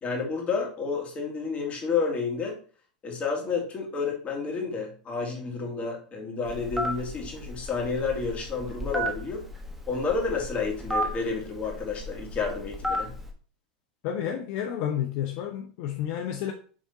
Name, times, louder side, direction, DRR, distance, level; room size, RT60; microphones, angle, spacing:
voice 1, 0.0-2.6 3.0-9.4 9.9-13.1, left 4 dB, 30° left, 2.2 m, -30 dB
Telephone, 6.5-13.3, equal, 5° right, 1.4 m, -34 dB
voice 2, 14.0-16.5, left 9 dB, 55° left, 0.7 m, -30 dB
6.3 x 3.6 x 4.1 m
hypercardioid pair, 105°, 5 cm